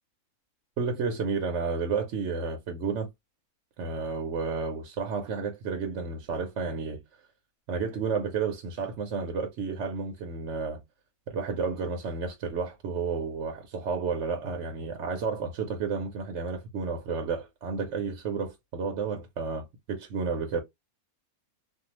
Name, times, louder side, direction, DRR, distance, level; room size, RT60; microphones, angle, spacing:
voice 1, 0.8-3.1 3.8-7.0 7.7-10.8 11.3-20.6, right 5 dB, 60° right, 0.9 m, -31 dB
2.6 x 2.3 x 2.9 m
omnidirectional pair, 1.6 m